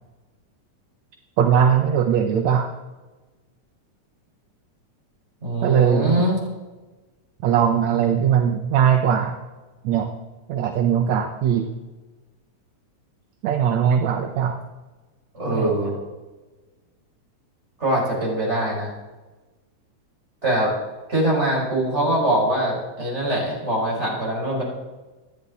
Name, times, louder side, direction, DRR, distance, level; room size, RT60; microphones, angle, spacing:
voice 1, 1.4-2.7 5.6-6.2 7.4-9.4 9.8-10.1 10.5-11.7 13.4-14.6 15.5-15.7, right 8 dB, 70° right, 5 dB, 2.1 m, -20 dB
voice 2, 5.4-6.4 15.3-16.0 17.8-18.9 20.4-20.7 21.1-24.6, right 1 dB, 20° right, -4 dB, 6.0 m, -23 dB
27.0 x 10.5 x 4.2 m, 1.2 s
omnidirectional pair, 3.4 m